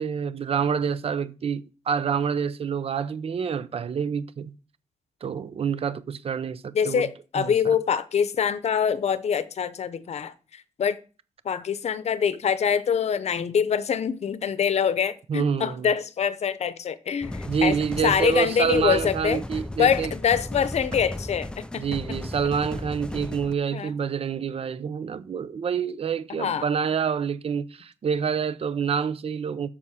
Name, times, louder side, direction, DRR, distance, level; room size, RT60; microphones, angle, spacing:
voice 1, 0.0-4.5 5.2-7.1 7.4-7.7 15.3-15.9 17.5-20.1 21.7-29.7, right 7 dB, 50° right, 0.6 m, -27 dB
voice 2, 6.7-11.0 11.4-17.8 18.0-19.4 19.8-21.8 23.7-23.9 26.3-26.7, left 7 dB, 55° left, 0.7 m, -25 dB
sound 1, 17.2-23.5, left 1 dB, 5° left, 0.3 m, -35 dB
7.4 x 6.9 x 4.9 m
wide cardioid pair, 140°, 13 cm